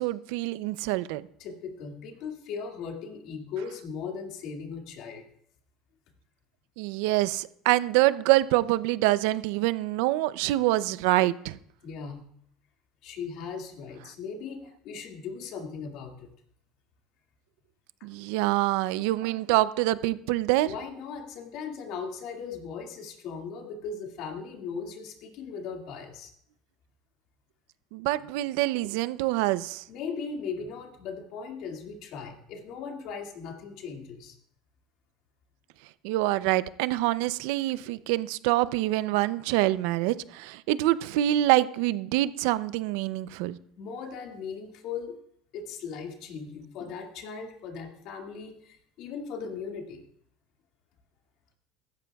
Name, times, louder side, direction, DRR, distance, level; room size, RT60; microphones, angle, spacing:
voice 1, 0.0-1.2 6.8-11.6 18.0-20.7 27.9-29.8 36.0-43.6, right 16 dB, 80° right, 16 dB, 0.5 m, -25 dB
voice 2, 1.4-5.2 11.8-12.2 13.0-16.3 20.7-26.3 29.9-34.4 43.8-45.1 45.5-50.0, left 5 dB, 60° left, 2 dB, 2.1 m, -38 dB
16.0 x 13.5 x 2.3 m, 0.69 s
supercardioid pair, 125°, 0 cm